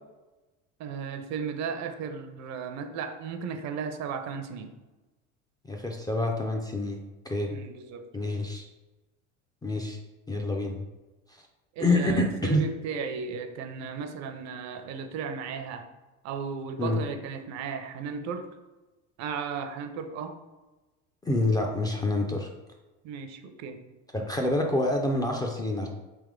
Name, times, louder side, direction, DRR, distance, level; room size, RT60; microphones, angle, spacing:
voice 1, 0.8-4.7 7.5-8.1 11.8-15.9 16.2-18.5 19.2-20.4 23.0-23.8, right 6 dB, 50° right, 8 dB, 0.6 m, -35 dB
voice 2, 5.7-7.0 7.3-7.5 8.1-8.6 9.6-10.0 10.3-10.8 11.8-12.6 16.8-17.0 21.2-22.5 24.1-25.9, left 2 dB, 10° left, 1 dB, 0.3 m, -27 dB
3.5 x 2.9 x 3.6 m, 1.1 s
supercardioid pair, 100°, 35 cm